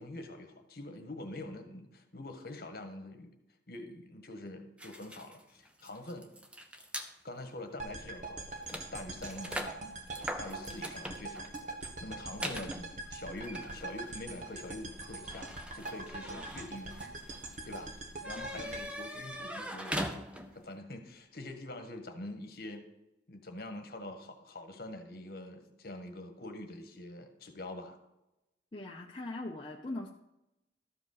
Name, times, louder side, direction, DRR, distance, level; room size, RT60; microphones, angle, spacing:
voice 1, 0.0-3.3 3.7-6.3 7.2-9.7 10.4-11.6 12.0-17.1 17.6-17.9 18.2-20.2 20.5-22.8 23.3-28.0, left 1 dB, 55° left, 6 dB, 1.4 m, -45 dB
sound 1, 4.8-7.1 7.8-8.0 8.2-20.7, equal, 5° right, 0.7 m, -43 dB
sound 2, 7.8-20.0, right 3 dB, 40° right, 1.3 m, -43 dB
voice 2, 28.7-30.1, left 2 dB, 25° left, -1 dB, 0.7 m, -40 dB
13.0 x 5.1 x 6.6 m, 0.90 s
head